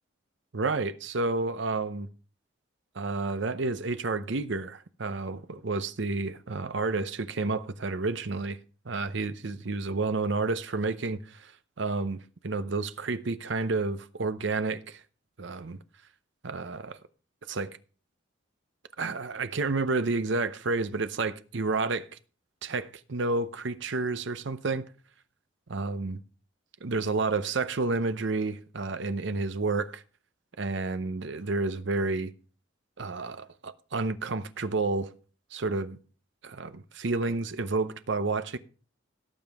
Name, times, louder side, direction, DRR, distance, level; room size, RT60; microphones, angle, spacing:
voice 1, 0.5-2.1 2.9-8.6 8.9-11.5 11.8-15.0 15.4-15.8 16.4-17.0 17.5-17.8 19.0-22.1 22.6-24.9 25.7-26.2 26.8-30.0 30.6-32.3 33.0-35.1 35.5-36.0 36.4-38.6, right 3 dB, 65° right, 0.7 m, -30 dB
17.5 x 7.1 x 3.5 m
head